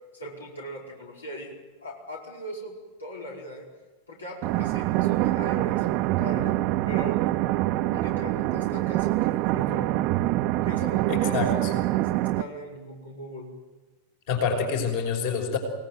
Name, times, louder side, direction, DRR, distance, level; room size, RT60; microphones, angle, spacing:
voice 1, 0.1-2.7 3.0-3.7 4.1-6.6 6.9-7.2 7.7-9.9 10.6-13.5, equal, 75° left, -2 dB, 5.2 m, -39 dB
sound 1, 4.4-12.4, right 17 dB, 40° right, 0.9 m, -25 dB
voice 2, 11.1-11.7 14.3-15.6, left 5 dB, 50° left, 4 dB, 5.8 m, -27 dB
28.5 x 18.5 x 9.5 m, 1.2 s
figure-of-eight pair, 90°, 0 cm